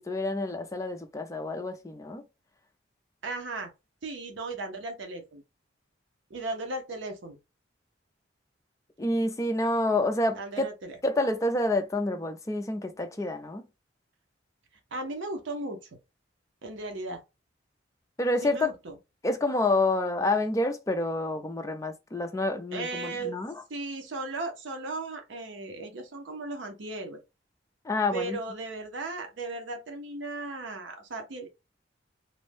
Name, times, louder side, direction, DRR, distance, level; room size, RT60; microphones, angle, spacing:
voice 1, 0.0-2.2 9.0-10.7 11.0-13.6 18.2-18.7 19.2-23.5 27.8-28.4, left 2 dB, 15° left, 0.4 m, -28 dB
voice 2, 3.2-3.7 4.0-5.4 6.3-7.4 10.3-11.0 14.9-16.0 16.6-17.2 18.4-18.9 22.7-23.4 23.7-27.2 28.1-31.5, right 2 dB, 75° right, 0.6 m, -36 dB
2.6 x 2.1 x 3.2 m
head